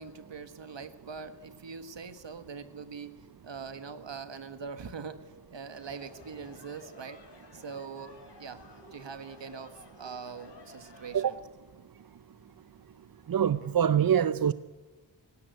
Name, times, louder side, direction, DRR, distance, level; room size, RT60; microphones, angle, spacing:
voice 1, 0.0-3.2 3.4-5.2 5.5-7.2 7.5-8.6 8.9-11.4, right 5 dB, 70° right, 1.6 m, -42 dB
sound 1, 5.7-11.2, left 2 dB, 60° left, 3.7 m, -53 dB
voice 2, 13.3-14.5, right 9 dB, 50° right, 0.6 m, -24 dB
18.5 x 17.5 x 9.3 m
wide cardioid pair, 80°, 46 cm